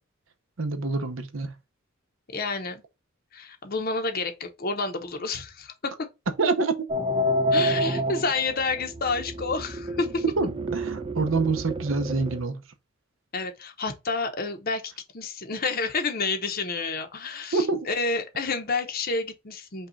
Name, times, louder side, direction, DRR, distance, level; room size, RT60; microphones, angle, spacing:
voice 1, 0.6-1.5 6.4-6.7 10.4-12.6 17.5-17.9, right 3 dB, 70° right, 0.8 m, -26 dB
voice 2, 2.3-2.8 3.3-6.0 7.5-10.2 13.3-19.9, left 3 dB, 45° left, 0.8 m, -29 dB
sound 1, 6.9-12.4, equal, 25° right, 0.5 m, -28 dB
5.4 x 2.4 x 3.9 m
head